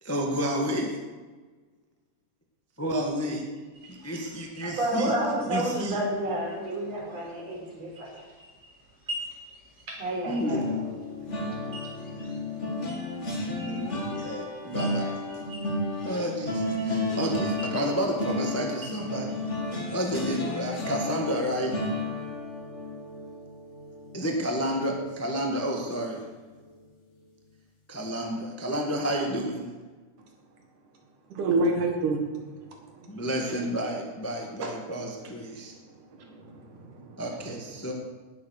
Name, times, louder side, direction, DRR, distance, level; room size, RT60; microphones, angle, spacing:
voice 1, 0.0-1.0 2.8-3.5 3.9-5.1 5.4-6.0 10.3-11.0 13.6-15.1 16.0-19.4 19.9-21.8 24.1-26.2 27.9-29.7 33.1-35.7 37.2-37.9, equal, 10° left, 0 dB, 0.9 m, -30 dB
sound 1, 3.7-19.6, equal, 20° right, 4.6 m, -47 dB
voice 2, 4.6-8.2 9.9-10.7, right 1 dB, 50° right, -2 dB, 5.1 m, -30 dB
sound 2, 10.4-25.6 26.0-26.2 26.5-26.7, left 2 dB, 25° left, 2.0 m, -33 dB
voice 3, 31.3-32.2 32.9-33.2 34.6-34.7 35.7-35.8 36.1-37.2, right 2 dB, 75° right, 2 dB, 3.0 m, -28 dB
19.0 x 7.6 x 6.6 m, 1.4 s
omnidirectional pair, 3.7 m